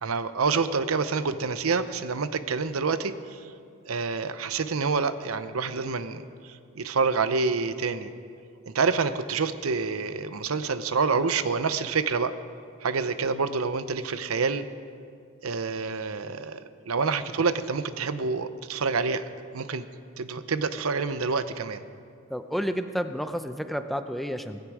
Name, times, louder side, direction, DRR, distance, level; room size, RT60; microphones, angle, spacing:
voice 1, 0.0-3.1 3.9-6.2 6.8-8.1 8.7-12.3 12.8-14.6 15.4-19.2 19.5-19.8 20.2-21.8, right 4 dB, 80° right, 12 dB, 0.7 m, -27 dB
voice 2, 22.3-24.6, equal, ahead, 8 dB, 0.6 m, -30 dB
18.0 x 16.0 x 4.9 m, 2.3 s
head